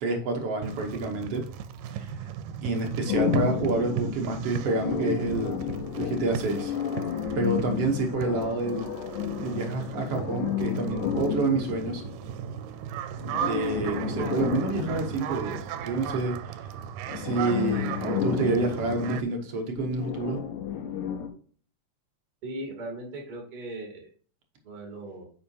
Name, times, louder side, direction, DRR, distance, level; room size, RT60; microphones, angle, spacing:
voice 1, 0.0-1.4 1.9-2.3 2.6-5.6 6.0-6.7 7.3-8.9 9.4-12.0 13.4-16.7 17.1-20.4, right 3 dB, 60° right, 3 dB, 1.6 m, -28 dB
sound 1, 0.6-19.2, right 9 dB, 85° right, 2.2 m, -36 dB
sound 2, 3.1-12.7 13.2-15.8 17.1-21.3, left 8 dB, 75° left, 2.2 m, -32 dB
voice 2, 22.4-24.1 24.6-25.3, right 1 dB, 30° right, 0 dB, 2.3 m, -38 dB
8.6 x 5.6 x 2.8 m, 0.43 s
omnidirectional pair, 3.8 m